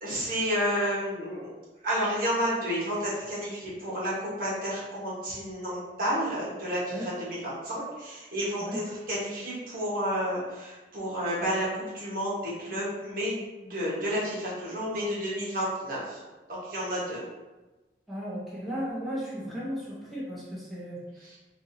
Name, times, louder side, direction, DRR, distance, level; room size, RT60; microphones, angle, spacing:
voice 1, 0.0-1.5 1.8-16.2 16.5-17.2 21.2-21.4, equal, 55° right, -7 dB, 1.3 m, -31 dB
voice 2, 18.1-21.0, equal, ahead, -9 dB, 0.9 m, -35 dB
4.6 x 2.6 x 2.7 m, 1.1 s
head